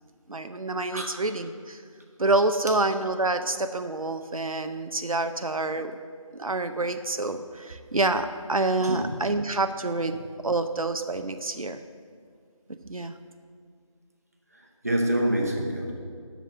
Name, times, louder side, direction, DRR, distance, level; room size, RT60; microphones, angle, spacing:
voice 1, 0.3-1.8 2.2-5.9 6.3-10.2 10.4-11.8 12.7-13.1, right 2 dB, 80° right, 8 dB, 0.6 m, -27 dB
voice 2, 14.5-15.9, right 1 dB, 25° right, 0 dB, 1.0 m, -27 dB
12.5 x 4.2 x 7.4 m, 2.2 s
figure-of-eight pair, 170°, 18 cm